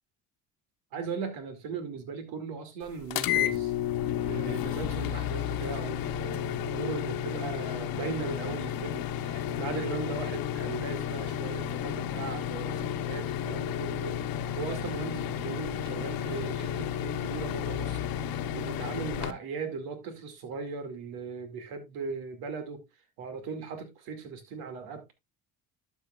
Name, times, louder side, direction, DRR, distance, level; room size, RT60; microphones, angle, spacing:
voice 1, 0.9-3.7 4.2-14.2 14.6-22.8 23.2-25.1, right 5 dB, 85° right, 2.3 m, -38 dB
sound 1, 3.1-19.3, left 10 dB, 70° left, 1.0 m, -32 dB
12.5 x 7.1 x 2.4 m
supercardioid pair, 90°, 36 cm